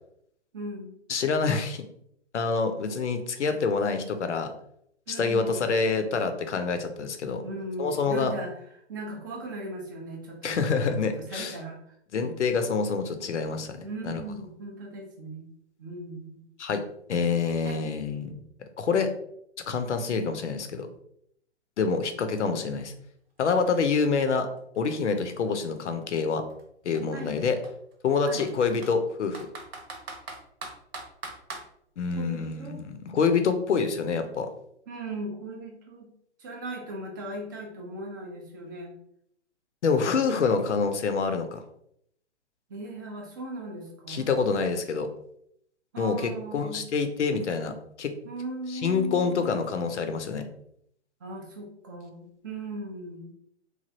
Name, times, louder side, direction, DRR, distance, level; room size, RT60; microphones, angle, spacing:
voice 1, 0.5-1.0 5.1-5.7 7.4-8.5 8.9-11.0 11.3-11.8 12.2-12.3 13.8-15.5 15.8-16.4 17.6-17.8 27.1-27.3 28.3-28.5 32.2-32.8 34.9-36.1 36.4-38.9 42.7-44.3 45.9-46.8 48.2-49.7 51.2-53.3, right 2 dB, 20° right, 0 dB, 0.3 m, -38 dB
voice 2, 1.1-1.8 2.3-4.5 5.1-7.4 7.8-8.3 10.4-11.6 12.1-13.8 14.1-14.2 16.6-16.8 17.1-18.4 18.8-19.1 19.7-20.9 21.8-22.9 23.4-24.5 24.8-26.4 26.8-27.6 28.0-29.4 32.0-34.5 39.8-41.6 44.1-45.1 46.0-47.7 48.0-48.1 48.7-50.4, left 5 dB, 85° left, 7 dB, 0.6 m, -26 dB
Computer keyboard, 23.4-23.5 23.8-25.7 26.5-26.6 26.9-27.0 27.6-29.0 29.3-31.7, right 3 dB, 60° right, 0.8 m, -41 dB
3.2 x 2.3 x 2.6 m, 0.71 s
hypercardioid pair, 135°, 34 cm